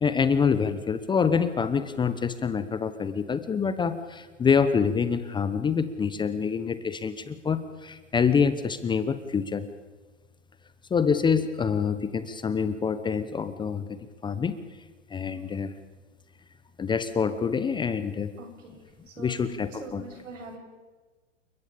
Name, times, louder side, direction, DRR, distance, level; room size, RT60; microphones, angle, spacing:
voice 1, 0.0-9.7 10.9-14.0 14.2-14.5 15.1-15.7 16.8-18.3 19.2-20.0, left 6 dB, 10° left, 12 dB, 1.0 m, -26 dB
voice 2, 18.4-18.8 19.2-20.6, right 2 dB, 75° right, 4 dB, 7.9 m, -43 dB
29.0 x 15.5 x 8.7 m, 1.3 s
hypercardioid pair, 120°, 38 cm